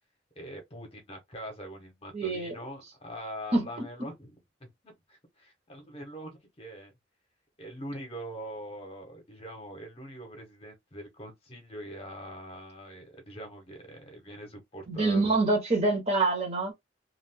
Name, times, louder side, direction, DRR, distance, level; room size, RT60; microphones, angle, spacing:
voice 1, 0.4-4.3 4.6-6.9 7.6-15.5, equal, 30° left, 0.9 m, -43 dB
voice 2, 2.1-2.5 3.5-3.7 14.9-16.7, right 2 dB, 35° right, 1.1 m, -26 dB
2.5 x 2.4 x 3.5 m
head